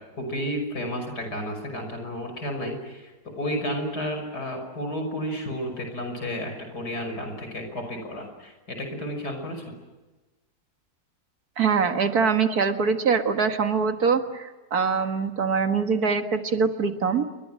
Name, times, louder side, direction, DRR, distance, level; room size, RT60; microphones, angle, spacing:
voice 1, 0.1-3.1 3.4-9.7, equal, 80° left, 5 dB, 6.5 m, -32 dB
voice 2, 11.6-17.2, right 5 dB, 70° right, 6 dB, 2.3 m, -23 dB
29.0 x 24.0 x 7.7 m, 1.2 s
omnidirectional pair, 1.7 m